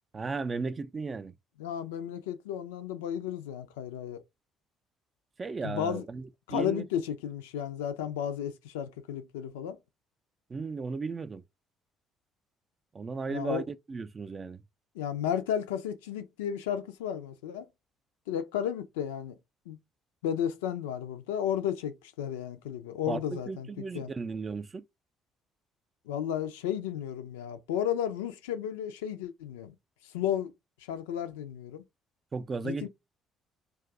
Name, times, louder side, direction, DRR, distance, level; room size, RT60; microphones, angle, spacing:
voice 1, 0.1-1.3 5.4-6.9 10.5-11.4 12.9-14.6 23.1-24.8 32.3-32.9, right 4 dB, 35° right, 0.4 m, -35 dB
voice 2, 1.6-4.2 5.6-6.0 6.5-9.8 13.3-13.6 14.9-17.7 18.3-19.4 19.7-19.8 20.2-24.1 26.1-29.7 30.1-30.5 30.9-31.8 32.6-32.9, left 9 dB, 80° left, 0.4 m, -33 dB
2.5 x 2.3 x 3.7 m
hypercardioid pair, 50°, 0 cm